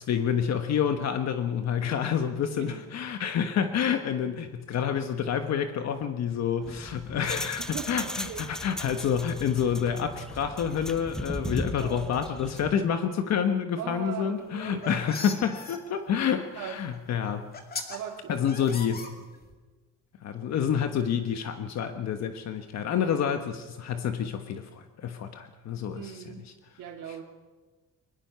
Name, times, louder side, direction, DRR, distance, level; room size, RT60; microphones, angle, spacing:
voice 1, 0.0-17.5 18.3-19.0 20.2-26.5, left 8 dB, 55° left, 7 dB, 1.3 m, -28 dB
voice 2, 2.5-2.9 4.0-4.4 7.6-8.5 11.8-12.3 13.8-15.1 16.2-16.8 17.9-18.6 19.0-19.1 22.9-23.2 25.9-26.4 26.8-27.2, right 8 dB, 70° right, -3 dB, 2.7 m, -40 dB
sound 1, 6.6-12.8, equal, ahead, 0.8 m, -37 dB
sound 2, 14.5-15.8 16.9-17.0 17.5-18.0 18.5-19.5, left 4 dB, 30° left, 2.5 m, -39 dB
22.5 x 21.5 x 5.8 m, 1.3 s
cardioid pair, 155°, 32 cm